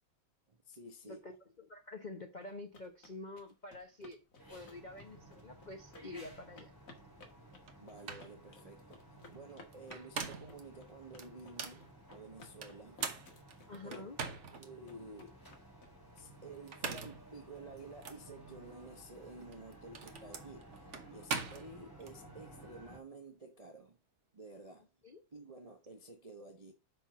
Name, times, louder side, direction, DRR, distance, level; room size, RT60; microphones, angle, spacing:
voice 1, 0.5-1.2 7.8-13.0 13.8-14.0 14.5-15.4 16.2-24.0 24.3-24.9 25.3-26.7, right 2 dB, 25° right, 0.8 m, -52 dB
voice 2, 1.1-4.2 4.5-6.7 13.7-14.2 25.0-25.2, left 2 dB, 70° left, 0.4 m, -48 dB
sound 1, 2.4-16.2, left 3 dB, 45° left, 2.0 m, -59 dB
sound 2, 4.4-23.0, right 1 dB, 10° left, 3.4 m, -56 dB
sound 3, 7.7-7.8 8.1-8.3 9.7-10.6 11.2-11.8 12.6-14.7 15.2-15.3 16.5-17.2 18.0-18.2 19.4-22.1, right 5 dB, 45° right, 1.2 m, -41 dB
6.0 x 5.2 x 5.8 m
omnidirectional pair, 2.2 m